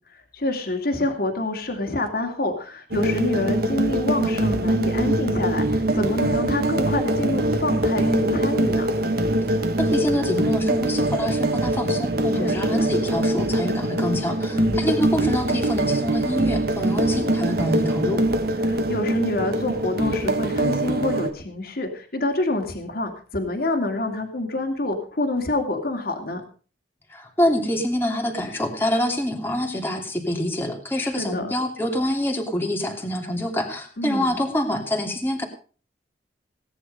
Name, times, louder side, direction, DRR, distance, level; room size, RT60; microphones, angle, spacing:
voice 1, 0.3-8.9 12.4-12.9 14.5-14.9 18.6-26.4 31.0-31.5 34.0-34.4, left 2 dB, 55° left, 4 dB, 2.7 m, -27 dB
sound 1, 2.9-21.3, right 1 dB, 60° right, 1.7 m, -23 dB
voice 2, 9.8-18.2 27.1-35.4, equal, 15° left, 2 dB, 2.8 m, -26 dB
18.0 x 10.0 x 5.4 m, 0.40 s
head